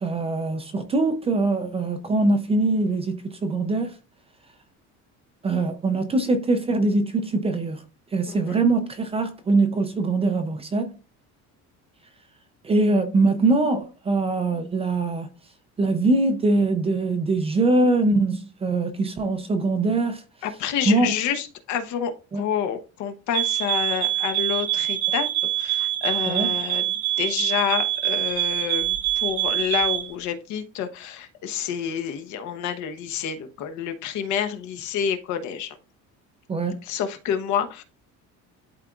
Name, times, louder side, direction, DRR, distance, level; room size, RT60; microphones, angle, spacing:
voice 1, 0.0-3.9 5.4-7.8 8.1-10.9 12.6-15.3 15.8-20.2 20.9-21.1 22.3-22.4 26.3-26.5 36.5-36.8, right 2 dB, 20° right, 0.5 m, -22 dB
voice 2, 8.3-8.6 20.4-25.3 25.6-35.8 36.8-37.8, left 8 dB, 60° left, 1.0 m, -28 dB
sound 1, 23.3-30.1, right 14 dB, 55° right, 0.8 m, -25 dB
11.5 x 3.9 x 2.4 m
cardioid pair, 180°, 33 cm